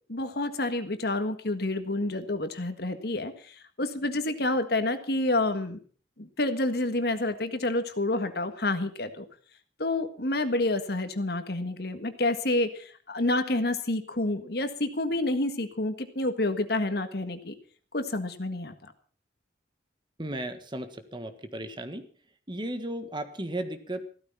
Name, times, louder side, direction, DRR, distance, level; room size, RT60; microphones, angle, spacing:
voice 1, 0.1-5.8 6.2-9.3 9.8-17.5 17.9-18.7, left 2 dB, 60° left, 9 dB, 1.7 m, -29 dB
voice 2, 20.2-22.0 22.5-24.1, right 1 dB, 25° right, 9 dB, 1.6 m, -35 dB
15.0 x 13.5 x 5.7 m, 0.42 s
head